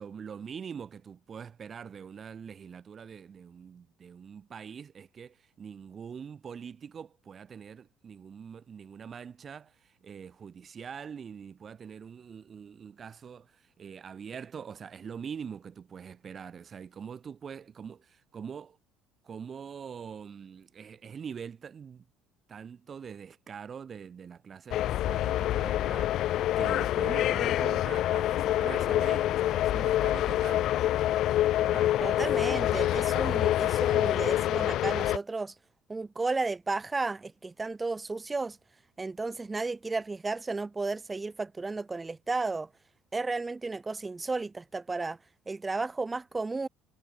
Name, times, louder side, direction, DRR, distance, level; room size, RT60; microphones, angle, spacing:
voice 1, 0.0-18.8 19.2-22.0 22.5-30.7 31.6-32.0, right 7 dB, 35° right, 1.2 m, -43 dB
sound 1, 24.7-35.2, left 13 dB, 60° left, 0.7 m, -26 dB
voice 2, 32.0-35.5 35.9-38.6 39.0-42.7 43.1-45.2 45.5-46.7, right 3 dB, 15° right, 1.4 m, -33 dB
cardioid pair, 120°, 0 cm